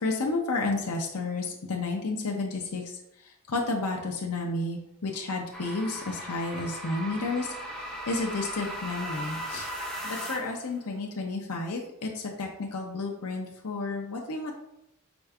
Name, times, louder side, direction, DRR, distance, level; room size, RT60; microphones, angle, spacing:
voice 1, 0.0-2.9 3.2-9.7 10.0-14.5, left 3 dB, 85° left, 0 dB, 0.7 m, -31 dB
sound 1, 5.5-10.7, right 1 dB, ahead, 0.7 m, -37 dB
5.0 x 4.3 x 2.4 m, 0.82 s
head